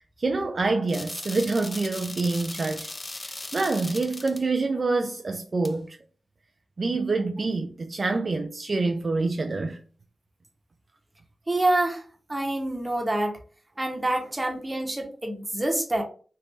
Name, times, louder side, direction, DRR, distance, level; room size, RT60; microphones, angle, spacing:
voice 1, 0.0-2.9 3.2-6.0 6.8-9.8, right 3 dB, 45° right, 0.3 m, -26 dB
sound 1, 0.9-4.4 5.6-5.7, left 2 dB, 30° left, 0.4 m, -38 dB
voice 2, 11.5-12.0 12.3-13.4 13.8-16.0, right 1 dB, 20° right, 0.9 m, -26 dB
3.3 x 2.6 x 3.0 m
wide cardioid pair, 90°, 0 cm